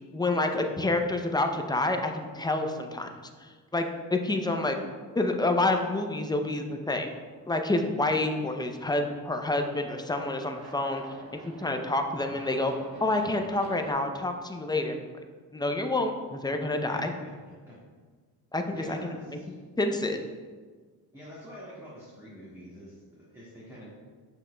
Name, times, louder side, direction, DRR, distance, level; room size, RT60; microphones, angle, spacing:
voice 1, 0.1-3.1 3.4-3.8 4.1-4.8 5.1-7.1 7.5-11.0 11.6-12.7 13.0-15.0 15.5-17.1 18.5-19.1 19.8-20.2, left 2 dB, 10° left, 5 dB, 0.5 m, -28 dB
Aircraft, 8.6-13.9, right 2 dB, 65° right, 1.2 m, -49 dB
voice 2, 16.8-17.8 18.7-19.6 21.1-23.9, equal, 5° right, -8 dB, 1.7 m, -46 dB
7.2 x 6.1 x 2.2 m, 1.5 s
cardioid pair, 90°, 39 cm